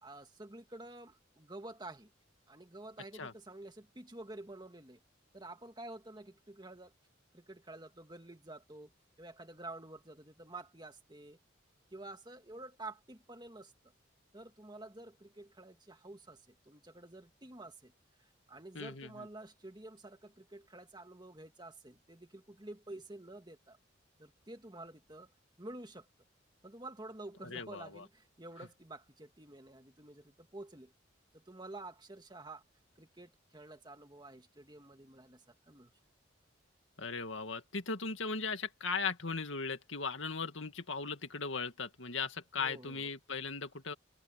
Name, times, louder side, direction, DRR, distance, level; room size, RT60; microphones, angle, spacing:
voice 1, 0.0-2.1 2.5-5.0 5.3-6.9 7.3-8.9 9.2-11.4 11.9-13.7 14.3-17.9 18.2-23.8 24.2-25.3 25.6-26.1 26.6-30.9 31.3-32.6 33.0-35.9 42.6-43.1, right 2 dB, 20° right, 2.0 m, -50 dB
voice 2, 18.7-19.3 27.5-28.0 37.0-43.9, left 4 dB, 80° left, 2.2 m, -38 dB
head